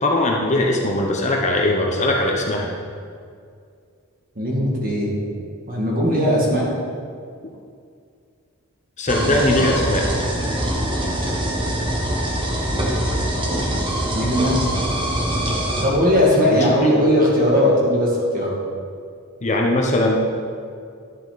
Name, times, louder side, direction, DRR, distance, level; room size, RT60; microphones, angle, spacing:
voice 1, 0.0-2.7 9.0-10.1 16.5-16.9 19.4-20.3, left 1 dB, 30° left, 0 dB, 0.9 m, -20 dB
voice 2, 4.4-5.2 5.7-6.7 14.1-14.6 15.8-18.6, equal, 40° right, -4 dB, 2.2 m, -18 dB
sound 1, 9.1-15.8, right 1 dB, 20° right, 1.2 m, -23 dB
11.5 x 7.8 x 4.1 m, 2.3 s
head